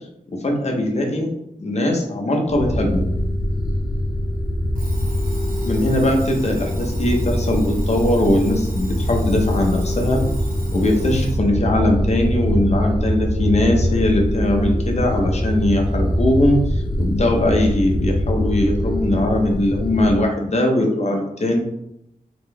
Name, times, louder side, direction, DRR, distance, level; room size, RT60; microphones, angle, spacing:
voice 1, 0.3-1.3 1.6-3.1 5.6-10.2 10.7-21.6, left 1 dB, 50° left, 1 dB, 0.9 m, -20 dB
sound 1, 2.5-20.2, left 1 dB, 30° left, 0.6 m, -24 dB
Alarm, 4.7-11.4, right 2 dB, 80° right, 1.3 m, -40 dB
sound 2, 10.1-17.9, equal, 30° right, 1.1 m, -26 dB
3.9 x 3.6 x 3.4 m, 0.79 s
wide cardioid pair, 100°, 14 cm